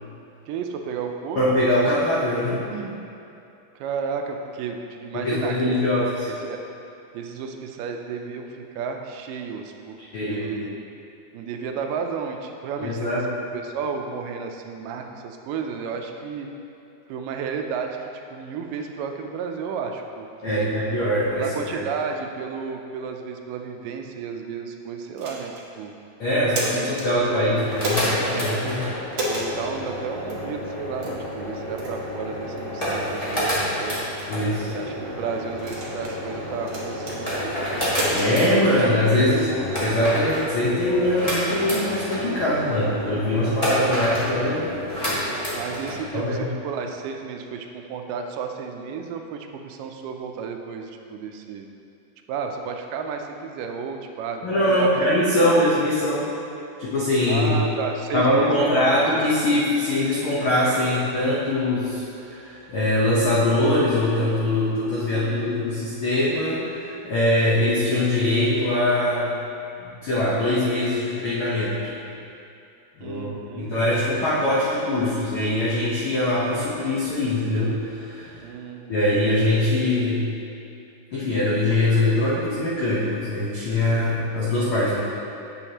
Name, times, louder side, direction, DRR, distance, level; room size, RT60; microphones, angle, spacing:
voice 1, 0.5-1.7 2.7-3.0 3.8-5.8 6.2-6.7 7.1-10.8 11.3-16.5 17.1-18.0 18.3-20.8 21.4-25.9 26.5-27.6 29.2-34.1 34.7-38.8 39.3-39.7 45.5-51.7 52.3-55.1 57.3-58.8 59.1-59.2 65.1-65.7 73.0-73.7 78.4-79.0, right 6 dB, 85° right, 4 dB, 2.1 m, -33 dB
voice 2, 1.4-2.6 5.1-6.3 10.0-10.5 12.8-13.2 20.4-21.4 21.7-21.8 26.2-28.9 34.3-34.7 38.1-39.5 39.8-44.7 46.1-46.5 54.4-56.3 56.8-57.5 58.1-69.3 69.8-72.0 73.0-78.4 78.9-80.3 81.1-85.0, left 1 dB, 80° left, -8 dB, 1.2 m, -22 dB
sound 1, 25.2-25.7 26.3-27.1 27.8-28.2 29.1-29.5 30.3-30.4 31.0-31.2 31.8-32.0 32.6-32.7 33.3-33.6 34.4-34.8 35.6-36.2 36.7-37.2 37.9-38.3, right 1 dB, 60° right, 1.2 m, -30 dB
sound 2, 27.4-46.0, equal, 40° left, 0.5 m, -29 dB
8.8 x 7.1 x 2.9 m, 2.7 s
omnidirectional pair, 3.8 m